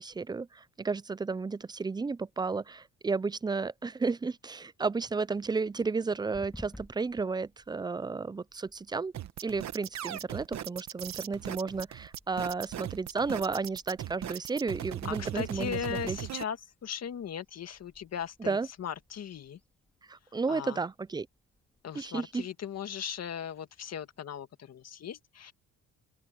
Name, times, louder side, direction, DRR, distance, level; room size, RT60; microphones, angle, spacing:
voice 1, 0.0-9.1 9.4-16.2 18.4-18.7 20.1-21.3 22.0-22.4, right 4 dB, 15° right, 0.4 m, -33 dB
sound 1, 6.3-24.2, left 1 dB, 5° left, 1.9 m, -58 dB
sound 2, 9.1-16.4, right 12 dB, 65° right, 1.2 m, -38 dB
voice 2, 15.0-19.6 20.5-20.8 21.8-25.5, left 8 dB, 55° left, 2.0 m, -38 dB
open air
cardioid pair, 90°, 30 cm